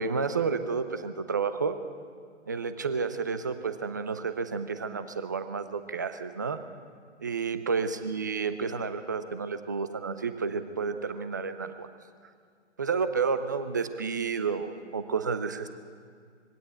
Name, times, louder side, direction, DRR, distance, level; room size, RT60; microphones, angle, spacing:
voice 1, 0.0-1.8 2.5-6.6 7.2-11.9 12.8-15.7, right 5 dB, 15° right, 11 dB, 0.4 m, -31 dB
22.0 x 16.5 x 8.3 m, 2.1 s
figure-of-eight pair, 135°, 36 cm